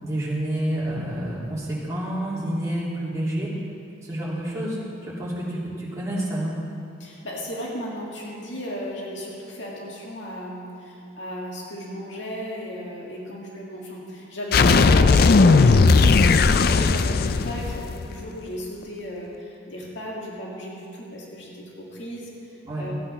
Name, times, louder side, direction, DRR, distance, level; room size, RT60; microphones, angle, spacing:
voice 1, 0.0-3.5 4.0-4.8 5.0-6.6 14.6-14.8 22.6-22.9, right 1 dB, 15° right, -8 dB, 3.0 m, -28 dB
voice 2, 7.0-22.9, equal, 75° left, -3 dB, 2.0 m, -35 dB
sound 1, 14.5-18.2, left 4 dB, 50° left, 0.4 m, -16 dB
15.0 x 8.7 x 5.5 m, 2.5 s
head